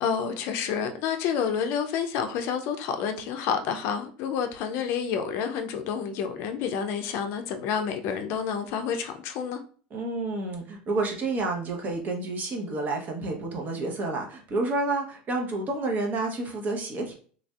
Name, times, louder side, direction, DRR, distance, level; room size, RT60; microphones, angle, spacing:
voice 1, 0.0-9.6, left 7 dB, 60° left, 0.5 m, -29 dB
voice 2, 9.9-17.1, right 2 dB, 40° right, 1.0 m, -29 dB
3.3 x 2.5 x 2.3 m
hypercardioid pair, 90°, 5 cm